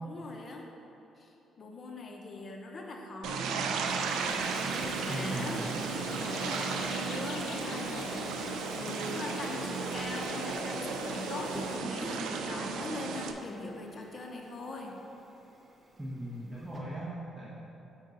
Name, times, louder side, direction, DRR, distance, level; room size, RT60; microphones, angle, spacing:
voice 1, 0.0-0.7 1.2-3.9 4.5-5.7 6.0-15.0, left 2 dB, 45° left, 1 dB, 0.8 m, -41 dB
sound 1, 3.2-13.3, right 5 dB, 90° right, 0.5 m, -35 dB
sound 2, 3.8-11.8, left 3 dB, 85° left, 0.7 m, -45 dB
Toilet flush, 4.3-12.1 12.5-16.8, right 2 dB, 30° right, 1.0 m, -47 dB
voice 2, 5.0-5.7 16.0-17.5, equal, 10° right, -8 dB, 1.2 m, -39 dB
6.4 x 6.3 x 3.9 m, 3.0 s
cardioid pair, 90°, 0 cm